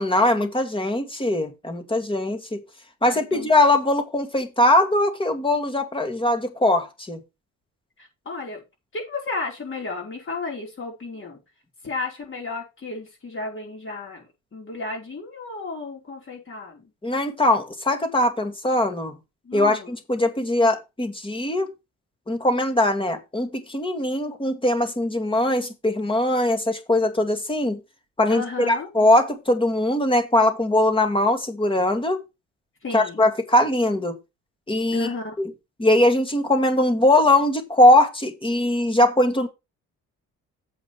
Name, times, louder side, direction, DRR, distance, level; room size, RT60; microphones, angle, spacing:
voice 1, 0.0-2.6 3.0-7.2 17.0-19.2 19.5-21.7 22.3-27.8 28.2-32.2 32.9-34.1 34.7-35.1 35.4-35.5 35.8-39.5, left 1 dB, 15° left, 2.2 m, -21 dB
voice 2, 3.0-3.5 8.0-8.6 8.9-11.4 11.8-14.3 14.5-16.9 19.4-19.9 28.3-28.9 32.8-33.2 34.9-35.4, left 3 dB, 40° left, 4.9 m, -33 dB
7.8 x 5.1 x 6.9 m
cardioid pair, 90°, 30 cm